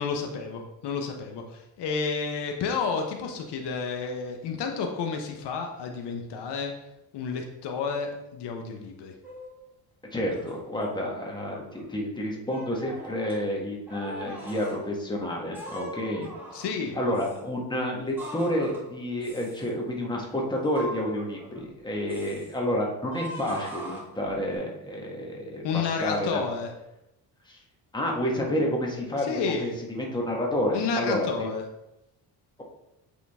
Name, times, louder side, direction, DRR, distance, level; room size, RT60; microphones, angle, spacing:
voice 1, 0.0-6.7 7.1-9.1 16.5-17.0 25.6-26.7 29.2-29.7 30.7-31.6, left 5 dB, 75° left, 3 dB, 1.0 m, -31 dB
sound 1, 9.2-9.6 10.2-10.6 11.2-11.8 12.5-13.4 13.9-14.8 15.5-16.8 17.1-17.4 18.2-18.9 19.2-19.7 20.7-21.7 22.1-22.6 23.1-24.6, right 1 dB, 5° right, 1.8 m, -41 dB
voice 2, 10.1-16.3 16.9-26.4 27.5-27.6 27.9-31.5, left 1 dB, 10° left, -2 dB, 1.4 m, -29 dB
8.3 x 3.8 x 3.6 m, 0.88 s
cardioid pair, 120°, 41 cm